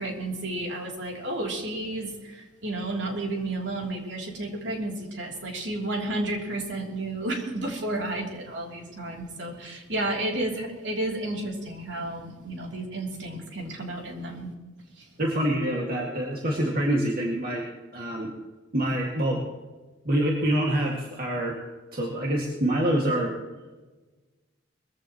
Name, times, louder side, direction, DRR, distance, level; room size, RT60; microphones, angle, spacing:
voice 1, 0.0-14.5 14.9-15.1, right 1 dB, 70° right, 0 dB, 3.2 m, -32 dB
voice 2, 15.2-17.6 17.9-18.3 18.7-19.5 20.1-21.6 21.9-23.3, right 1 dB, 55° right, -2 dB, 2.1 m, -26 dB
21.5 x 15.0 x 3.1 m, 1.2 s
head